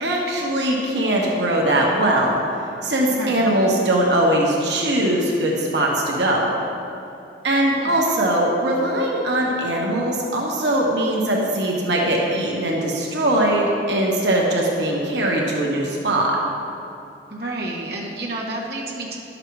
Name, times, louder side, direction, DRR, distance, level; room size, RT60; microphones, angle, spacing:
voice 1, 0.0-2.4 2.8-6.5 7.4-16.4, right 1 dB, 80° right, -2 dB, 1.3 m, -21 dB
voice 2, 3.1-3.5 7.8-7.9 17.3-19.2, right 2 dB, 65° right, -4 dB, 1.3 m, -30 dB
11.0 x 6.6 x 4.7 m, 2.7 s
head